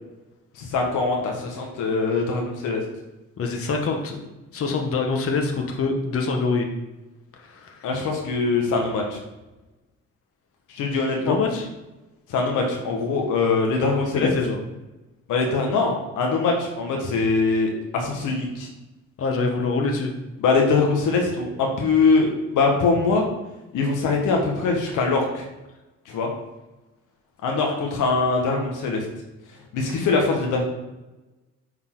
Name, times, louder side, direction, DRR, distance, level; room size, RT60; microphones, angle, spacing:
voice 1, 0.6-2.8 7.8-9.2 10.7-11.3 12.3-14.3 15.3-18.7 20.4-23.2 23.7-25.4 26.1-26.3 27.4-29.0 29.7-30.6, left 4 dB, 85° left, 1 dB, 1.5 m, -22 dB
voice 2, 3.4-6.7 7.4-7.9 11.3-11.7 14.1-14.6 19.2-20.1, left 4 dB, 50° left, 3 dB, 1.1 m, -25 dB
9.5 x 4.1 x 3.8 m, 1.1 s
cardioid pair, 90°, 30 cm